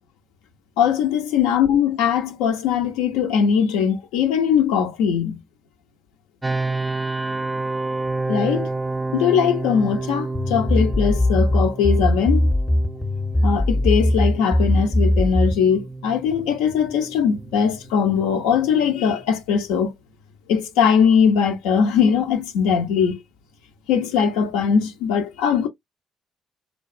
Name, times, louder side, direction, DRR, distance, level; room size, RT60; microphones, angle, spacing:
voice 1, 0.8-5.4 8.3-8.7 9.1-12.5 13.4-19.9 20.5-23.2 23.9-25.7, left 7 dB, 75° left, 0.5 m, -20 dB
sound 1, 6.4-19.2, right 3 dB, 15° right, 0.3 m, -30 dB
sound 2, 10.3-15.7, left 1 dB, 25° left, 0.6 m, -20 dB
2.3 x 2.2 x 2.5 m
hypercardioid pair, 45°, 0 cm